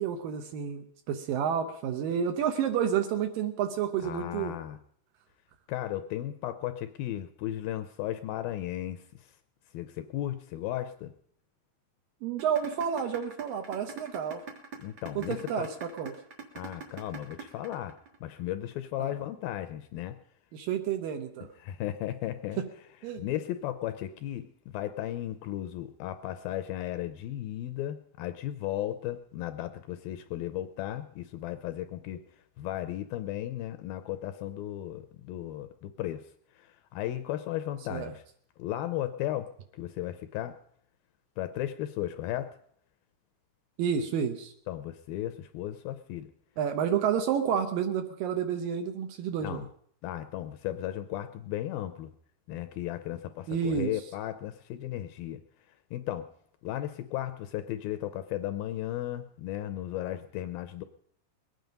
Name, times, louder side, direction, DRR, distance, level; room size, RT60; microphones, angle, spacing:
voice 1, 0.0-4.6 12.2-14.4 15.2-16.1 19.0-19.1 20.5-21.5 23.0-23.2 37.9-38.1 43.8-44.5 46.6-49.6 53.5-53.9, right 8 dB, 70° right, 7 dB, 2.4 m, -30 dB
voice 2, 4.0-4.8 5.7-9.3 9.7-11.1 14.8-15.7 16.5-20.2 21.6-22.6 23.2-32.2 32.6-36.2 36.6-38.2 38.6-40.6 41.4-42.6 44.7-46.3 49.4-49.7 50.0-52.1 52.5-55.4 55.9-56.3 56.6-60.8, left 13 dB, 80° left, 10 dB, 2.2 m, -35 dB
sound 1, 12.4-18.4, right 6 dB, 55° right, 2.5 m, -42 dB
21.5 x 9.3 x 5.2 m, 0.64 s
omnidirectional pair, 4.7 m